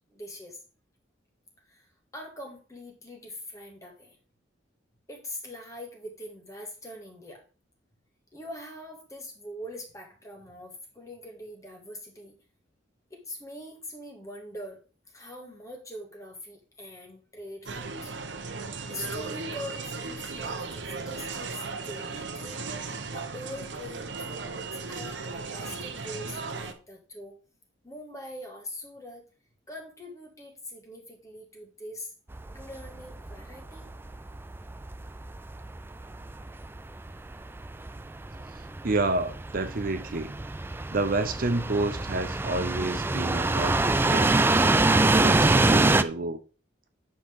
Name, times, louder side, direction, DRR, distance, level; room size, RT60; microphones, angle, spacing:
voice 1, 0.1-0.6 1.7-1.9 2.1-4.2 5.1-7.4 8.3-12.4 13.1-14.8 15.1-18.2 18.9-27.4 27.8-29.2 29.7-32.1 32.5-33.9, left 1 dB, 15° left, 1.9 m, -43 dB
sound 1, 17.7-26.7, right 4 dB, 65° right, 0.9 m, -36 dB
sound 2, 32.3-46.0, right 2 dB, 10° right, 0.3 m, -25 dB
voice 2, 38.5-40.3 40.9-44.4 45.1-46.4, right 2 dB, 50° right, 0.6 m, -29 dB
8.9 x 5.8 x 3.6 m
head